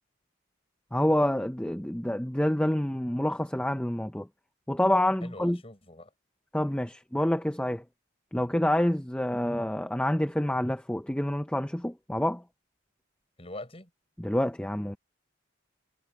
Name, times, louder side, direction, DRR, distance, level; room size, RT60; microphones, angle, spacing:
voice 1, 0.9-4.3 4.7-5.6 6.5-7.8 8.3-12.4 14.2-15.0, left 1 dB, 5° left, 0.6 m, -27 dB
voice 2, 5.2-6.1 13.4-13.9, left 2 dB, 30° left, 6.8 m, -43 dB
head